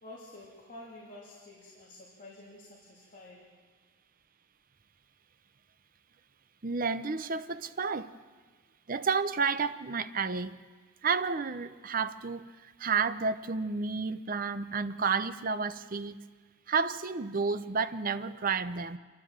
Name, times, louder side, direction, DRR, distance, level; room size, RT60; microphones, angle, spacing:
voice 1, 0.0-3.5, left 1 dB, 40° left, 2.9 m, -49 dB
voice 2, 6.6-8.1 8.9-10.6 11.0-12.4 12.8-16.2 16.7-19.0, right 5 dB, 40° right, 0.7 m, -31 dB
26.5 x 13.0 x 7.5 m
head